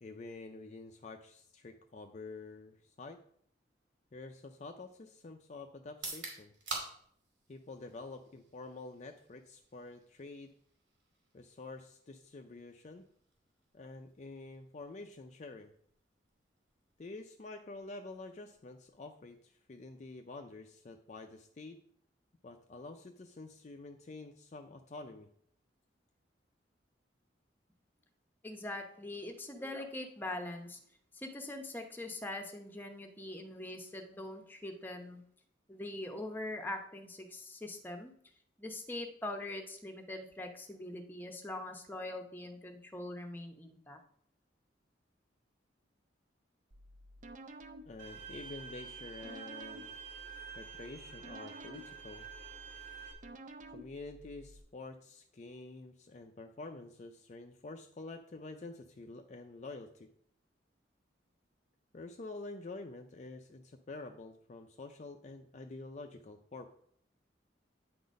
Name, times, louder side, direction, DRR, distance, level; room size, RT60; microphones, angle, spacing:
voice 1, 0.0-3.2 4.1-6.5 7.5-10.5 11.3-13.0 13.7-15.7 17.0-21.8 22.4-25.3 47.9-50.0 50.6-52.2 53.7-60.1 61.9-66.7, left 3 dB, 40° left, 5 dB, 0.4 m, -48 dB
sound 1, 5.9-19.7, right 3 dB, 80° right, 2.5 m, -51 dB
voice 2, 28.4-30.8 31.1-35.2 35.7-38.1 38.6-44.0, left 1 dB, 10° left, 4 dB, 0.8 m, -42 dB
sound 2, 46.7-54.6, right 1 dB, 40° right, 0.5 m, -53 dB
Bowed string instrument, 48.0-53.1, right 6 dB, 65° right, 2.0 m, -48 dB
9.3 x 4.0 x 5.1 m, 0.65 s
head